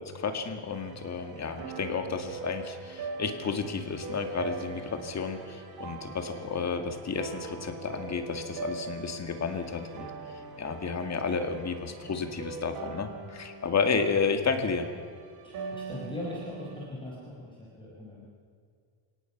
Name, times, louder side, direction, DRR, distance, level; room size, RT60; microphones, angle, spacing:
voice 1, 0.0-10.1 10.6-14.9, left 5 dB, 35° left, 6 dB, 2.1 m, -31 dB
sound 1, 0.7-16.9, right 4 dB, 45° right, 3.1 m, -42 dB
voice 2, 15.4-18.3, left 1 dB, 10° left, -5 dB, 5.0 m, -40 dB
29.5 x 17.5 x 6.0 m, 2.1 s
cardioid pair, 160°, 49 cm